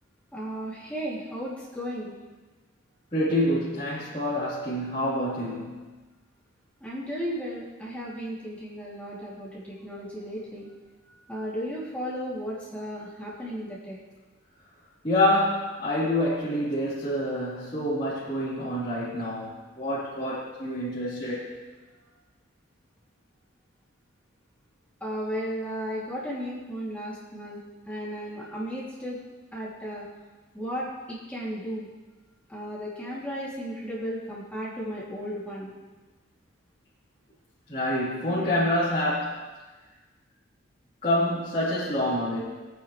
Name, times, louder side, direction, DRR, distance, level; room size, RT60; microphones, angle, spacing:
voice 1, 0.3-2.1 6.8-10.7 11.3-14.0 25.0-27.6 27.9-29.2 29.5-30.1 30.5-31.9 32.5-35.7, equal, 5° left, -8 dB, 2.9 m, -34 dB
voice 2, 3.1-5.8 15.0-21.6 37.7-39.4 41.0-42.4, left 1 dB, 30° left, -13 dB, 3.9 m, -27 dB
22.5 x 9.6 x 3.3 m, 1.3 s
head